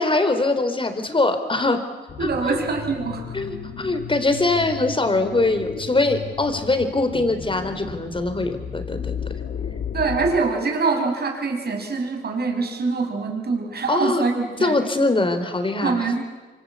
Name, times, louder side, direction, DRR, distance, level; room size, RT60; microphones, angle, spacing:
voice 1, 0.0-1.8 2.2-2.6 3.3-9.2 13.9-14.2 14.6-16.1, left 2 dB, 25° left, 8 dB, 4.2 m, -22 dB
sound 1, 2.1-10.4, left 7 dB, 65° left, 2.0 m, -34 dB
voice 2, 2.2-3.2 9.9-14.8 15.8-16.2, right 4 dB, 60° right, 3 dB, 5.9 m, -24 dB
26.0 x 25.5 x 8.4 m, 1.3 s
cardioid pair, 70°, 19 cm